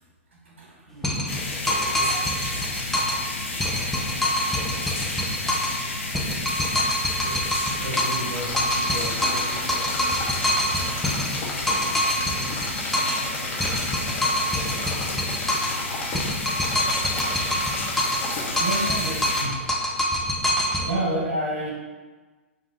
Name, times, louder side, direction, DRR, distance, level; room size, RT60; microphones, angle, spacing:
voice 1, 0.4-2.4 3.5-3.6 4.7-5.5 6.2-10.1 14.3-14.4 18.6-19.5 20.8-21.7, right 1 dB, 60° right, -3 dB, 1.3 m, -33 dB
sound 1, 1.0-3.3 3.6-5.8 6.1-8.3 8.6-13.3 13.6-15.8 16.1-18.3 18.6-20.9, left 1 dB, 5° left, 0.5 m, -25 dB
sound 2, 1.3-19.4, left 3 dB, 70° left, 0.7 m, -31 dB
Mechanisms, 8.4-18.9 19.3-19.4, left 3 dB, 25° left, 0.9 m, -34 dB
4.2 x 2.4 x 3.2 m, 1.3 s
figure-of-eight pair, 105°, 7 cm